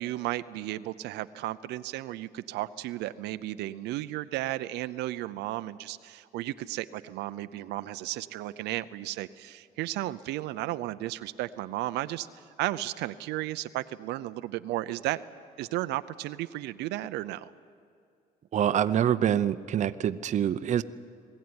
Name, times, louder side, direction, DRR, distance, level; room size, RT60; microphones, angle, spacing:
voice 1, 0.0-12.3 12.6-15.2 15.6-17.5, right 16 dB, 85° right, 12 dB, 0.6 m, -34 dB
voice 2, 18.5-20.8, right 10 dB, 45° right, 12 dB, 0.7 m, -25 dB
21.0 x 15.5 x 9.6 m, 2.3 s
cardioid pair, 110°, 17 cm